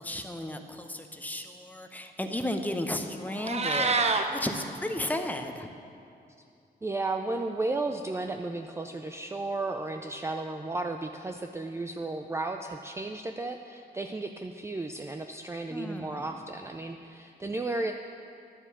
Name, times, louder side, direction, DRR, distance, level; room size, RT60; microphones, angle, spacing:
voice 1, 0.0-5.7 15.7-16.4, left 1 dB, 10° left, 5 dB, 0.8 m, -34 dB
Meow, 3.3-4.2, right 4 dB, 40° right, 0.7 m, -26 dB
voice 2, 6.8-17.9, right 2 dB, 15° right, 4 dB, 0.4 m, -34 dB
11.0 x 7.2 x 7.0 m, 2.5 s
wide cardioid pair, 110°, 17 cm